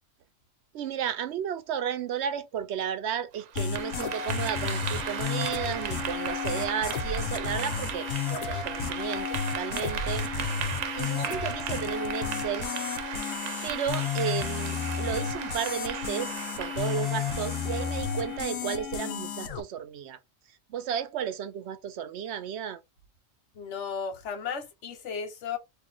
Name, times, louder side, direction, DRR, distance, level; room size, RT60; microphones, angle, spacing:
voice 1, 0.7-10.3 10.9-12.7 13.6-20.2 20.7-22.8, right 9 dB, 65° right, 0.8 m, -33 dB
Clapping / Applause, 3.3-18.6, right 9 dB, 90° right, 1.0 m, -37 dB
sound 1, 3.6-19.6, left 7 dB, 85° left, 1.1 m, -32 dB
voice 2, 23.5-25.6, left 6 dB, 65° left, 1.2 m, -34 dB
3.0 x 2.6 x 3.8 m
omnidirectional pair, 1.3 m